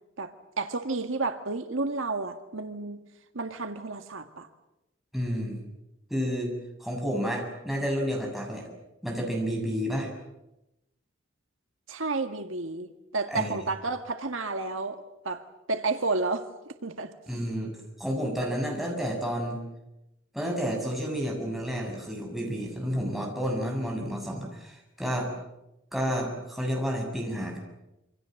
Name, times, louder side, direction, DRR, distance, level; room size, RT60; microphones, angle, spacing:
voice 1, 0.2-3.1 3.3-4.5 11.9-15.4 15.7-16.5 16.8-17.1, right 3 dB, 75° right, 7 dB, 1.9 m, -31 dB
voice 2, 5.1-5.6 6.1-6.5 6.8-8.6 9.0-10.1 13.3-13.6 17.3-17.7 18.0-19.6 20.3-25.3 25.9-27.6, equal, ahead, -1 dB, 7.4 m, -30 dB
27.5 x 26.0 x 7.8 m, 0.91 s
head